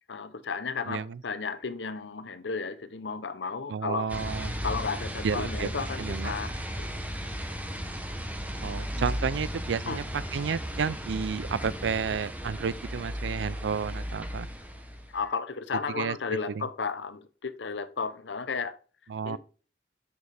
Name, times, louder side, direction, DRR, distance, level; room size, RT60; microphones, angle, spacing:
voice 1, 0.1-4.1 4.6-6.9 9.0-9.1 9.9-10.0 15.1-18.7 19.2-19.4, left 5 dB, 85° left, 0.7 m, -33 dB
voice 2, 0.9-1.2 3.7-4.6 5.2-5.7 6.0-6.3 8.6-10.0 10.3-14.5 16.0-16.2 16.5-16.6 19.1-19.4, right 6 dB, 80° right, 0.4 m, -31 dB
sound 1, 4.1-15.2, equal, 10° right, 1.0 m, -35 dB
7.2 x 6.4 x 3.4 m
head